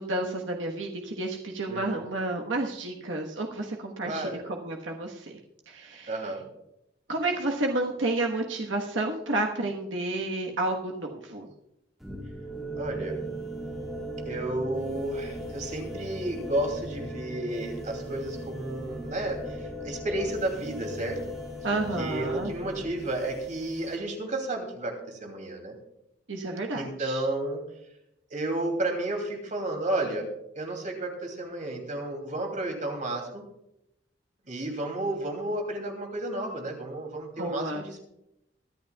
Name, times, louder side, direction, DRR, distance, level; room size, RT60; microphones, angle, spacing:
voice 1, 0.0-5.4 5.7-6.2 7.1-11.5 21.6-22.5 26.3-27.3 37.4-37.8, right 2 dB, 90° right, 1 dB, 1.3 m, -31 dB
voice 2, 1.7-2.0 4.0-4.5 6.1-6.4 12.7-13.2 14.2-21.2 22.0-25.7 26.7-27.6 28.3-30.3 30.5-33.4 34.5-38.0, right 1 dB, 45° right, 3 dB, 2.8 m, -32 dB
sound 1, 12.0-24.0, equal, ahead, 2.3 m, -38 dB
23.0 x 10.5 x 2.3 m, 0.83 s
head